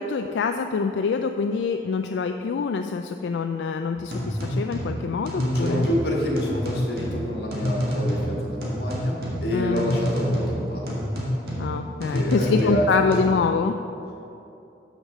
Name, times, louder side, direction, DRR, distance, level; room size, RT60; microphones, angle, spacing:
voice 1, 0.0-5.9 9.5-10.0 11.6-13.8, left 5 dB, 85° left, 6 dB, 0.3 m, -25 dB
sound 1, 4.0-13.2, equal, 60° right, 1.7 m, -28 dB
voice 2, 5.4-9.1 9.4-11.0 12.1-13.1, equal, 60° left, -2 dB, 1.8 m, -28 dB
6.5 x 6.1 x 6.5 m, 2.8 s
head